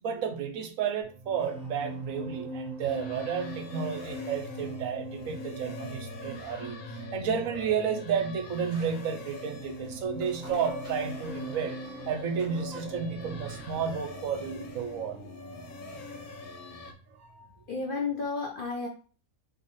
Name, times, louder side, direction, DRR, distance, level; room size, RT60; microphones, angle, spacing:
voice 1, 0.0-6.8 7.1-11.8 12.1-15.2 17.1-17.2, right 7 dB, 70° right, 1.0 m, -32 dB
sound 1, 1.0-17.7 17.9-18.2, right 1 dB, 45° right, 1.0 m, -43 dB
sound 2, 2.8-16.9, left 3 dB, 80° left, 1.2 m, -44 dB
sound 3, 9.7-15.0, right 2 dB, 5° right, 1.2 m, -52 dB
voice 2, 17.7-18.9, left 4 dB, 55° left, 0.6 m, -32 dB
4.0 x 3.0 x 3.0 m
omnidirectional pair, 1.5 m